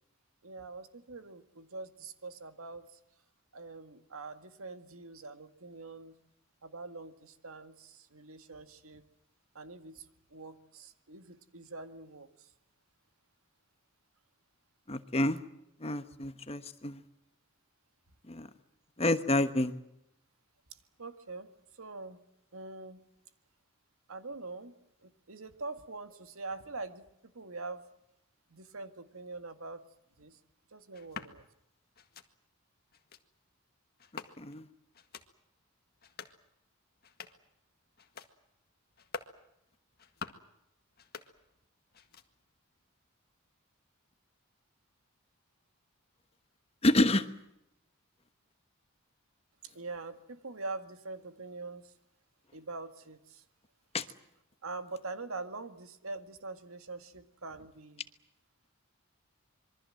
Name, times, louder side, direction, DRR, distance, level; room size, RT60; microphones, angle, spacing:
voice 1, 0.4-3.0 3.5-6.2 6.6-9.0 9.5-12.5 21.0-21.5 21.8-22.2 22.5-23.0 24.1-27.8 28.5-29.8 30.2-30.4 30.7-31.4 49.6-51.9 52.5-53.4 54.6-58.1, right 3 dB, 75° right, 9 dB, 1.9 m, -44 dB
voice 2, 14.9-15.4 15.8-17.0 18.3-18.5 19.0-19.7 34.4-34.6 46.8-47.3 53.9-54.0, left 1 dB, 30° left, 11 dB, 1.2 m, -28 dB
sound 1, 30.9-31.3 31.9-32.3 32.9-33.2 34.0-34.6 34.9-35.3 35.9-36.4 36.9-37.5 37.9-38.3 38.9-39.4 39.9-40.5 40.9-41.7 41.9-42.5, left 5 dB, 45° left, 1.8 m, -47 dB
26.5 x 23.5 x 7.7 m, 0.81 s
head